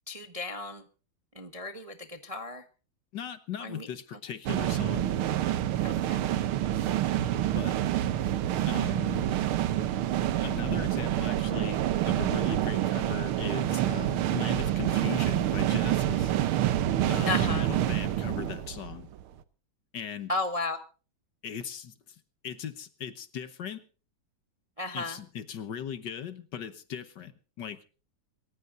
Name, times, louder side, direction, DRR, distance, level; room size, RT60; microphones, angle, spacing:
voice 1, 0.1-0.8 1.4-2.6 3.6-3.9 5.8-6.2 17.3-17.7 20.3-20.8 24.8-25.2, left 3 dB, 25° right, 7 dB, 0.8 m, -34 dB
voice 2, 3.1-5.1 7.5-7.8 8.6-9.3 10.4-16.3 17.1-19.1 19.9-20.3 21.4-23.8 24.9-27.8, left 8 dB, 60° left, 12 dB, 1.6 m, -39 dB
sound 1, 4.5-19.2, right 12 dB, 85° right, 1.8 m, -27 dB
27.0 x 15.0 x 2.6 m, 0.36 s
omnidirectional pair, 2.3 m